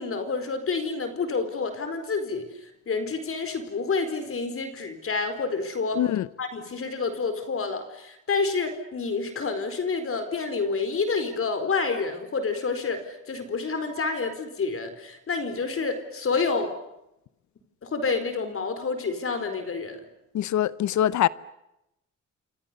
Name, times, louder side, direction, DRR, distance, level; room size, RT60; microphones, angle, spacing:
voice 1, 0.0-6.0 6.4-16.7 17.8-20.0, left 4 dB, 45° left, 4.5 m, -28 dB
voice 2, 6.0-6.3 20.3-21.3, left 11 dB, 70° left, 0.9 m, -23 dB
27.5 x 27.0 x 6.9 m
cardioid pair, 90°, 30 cm